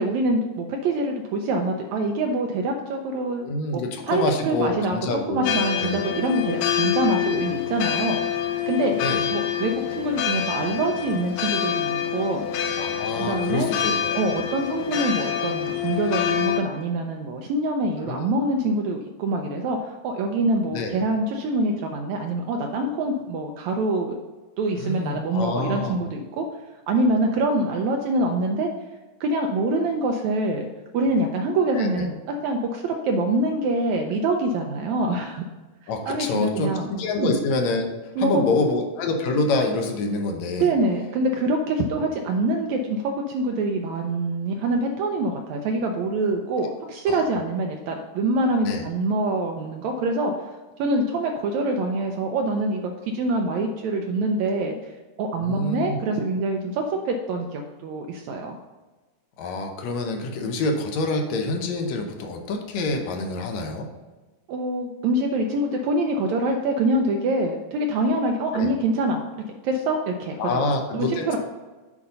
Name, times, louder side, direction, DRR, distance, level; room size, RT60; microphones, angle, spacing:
voice 1, 0.0-3.4 3.7-5.0 5.3-8.2 8.7-8.9 9.3-12.5 13.2-13.7 14.2-24.2 24.6-26.5 26.9-28.7 29.2-30.7 30.9-32.1 32.4-35.4 35.8-36.9 37.2-37.3 38.2-38.6 40.6-50.5 50.8-54.9 55.2-58.6 64.5-71.4, right 2 dB, 80° right, 3 dB, 1.7 m, -25 dB
voice 2, 3.4-5.5 5.8-6.1 8.9-9.2 12.8-14.2 18.0-18.2 20.7-21.0 24.8-26.0 31.7-32.1 35.9-37.9 38.2-40.7 46.6-46.7 47.1-47.2 48.6-48.8 55.4-56.0 59.4-63.9 68.5-68.7 70.4-71.4, left 2 dB, 70° left, 3 dB, 1.9 m, -27 dB
sound 1, 5.4-16.6, left 9 dB, 85° left, 2.3 m, -26 dB
8.5 x 4.1 x 5.3 m, 1.2 s
omnidirectional pair, 3.7 m